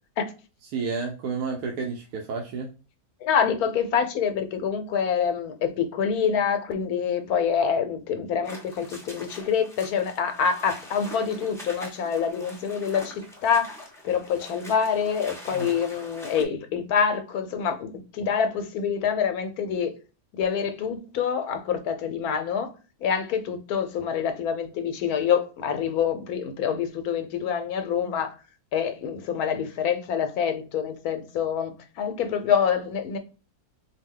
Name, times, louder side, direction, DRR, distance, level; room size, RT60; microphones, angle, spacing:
voice 1, 0.7-2.7 15.5-15.7, right 5 dB, 85° right, 1.2 m, -30 dB
voice 2, 3.2-13.8 14.0-19.9 20.4-22.7 23.0-28.4 28.7-33.2, left 7 dB, 80° left, 1.2 m, -26 dB
sound 1, 8.4-16.4, left 1 dB, ahead, 0.7 m, -43 dB
4.2 x 2.2 x 3.6 m
omnidirectional pair, 1.6 m